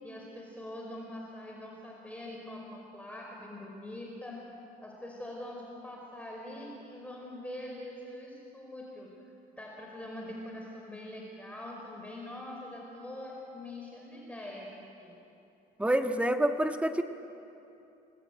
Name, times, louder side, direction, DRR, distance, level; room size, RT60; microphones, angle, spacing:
voice 1, 0.0-4.4 4.8-9.1 9.6-15.2, left 1 dB, 10° left, -2 dB, 4.9 m, -43 dB
voice 2, 15.8-17.0, right 1 dB, 5° right, 5 dB, 1.8 m, -27 dB
30.0 x 20.5 x 9.1 m, 2.8 s
cardioid pair, 110°, 17 cm